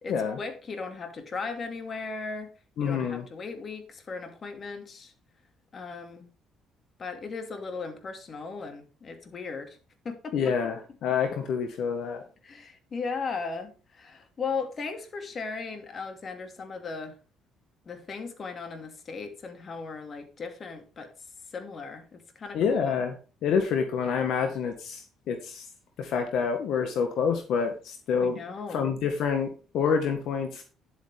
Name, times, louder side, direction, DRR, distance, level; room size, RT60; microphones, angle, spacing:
voice 1, 0.0-2.5 2.8-5.1 5.7-6.3 7.0-9.8 10.0-10.4 11.1-11.2 12.4-17.2 17.9-21.1 21.5-23.0 28.2-28.9, left 4 dB, 40° left, 2.5 m, -37 dB
voice 2, 2.8-3.2 10.3-12.2 22.5-23.1 23.4-25.6 26.0-28.4 28.7-30.6, left 6 dB, 70° left, 1.7 m, -27 dB
10.5 x 8.3 x 3.7 m
cardioid pair, 100°, 0 cm